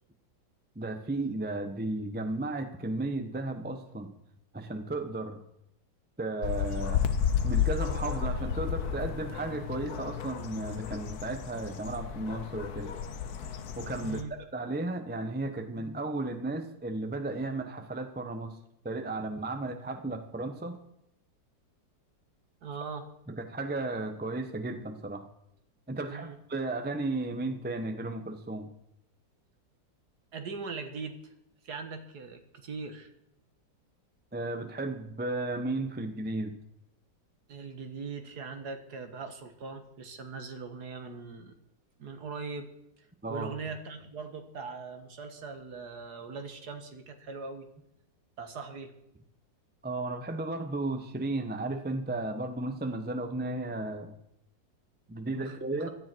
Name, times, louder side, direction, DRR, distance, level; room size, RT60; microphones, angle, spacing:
voice 1, 0.7-4.1 4.5-5.4 6.2-7.1 7.4-12.9 13.8-14.2 14.5-18.6 18.8-20.8 23.3-25.3 25.9-28.7 34.3-36.5 43.2-43.5 49.8-54.2 55.1-55.9, right 2 dB, 10° right, 7 dB, 0.7 m, -34 dB
sound 1, 6.4-14.2, left 8 dB, 60° left, 1.4 m, -32 dB
voice 2, 14.0-14.3 22.6-23.1 26.0-26.4 30.3-31.3 31.6-33.1 37.5-41.6 42.0-42.7 43.3-47.7 48.4-49.0 55.3-55.8, right 4 dB, 60° right, 6 dB, 2.0 m, -40 dB
17.0 x 13.0 x 4.6 m, 0.80 s
omnidirectional pair, 2.0 m